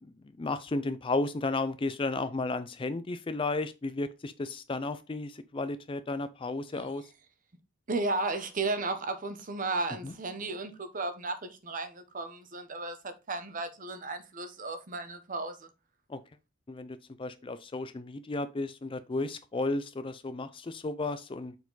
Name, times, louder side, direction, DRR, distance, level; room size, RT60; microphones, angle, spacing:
voice 1, 0.0-7.1 10.0-10.1 16.1-16.2 16.7-21.6, left 2 dB, 25° left, 0.4 m, -33 dB
voice 2, 7.9-15.7, right 3 dB, 40° right, 0.8 m, -34 dB
7.0 x 4.3 x 3.9 m
head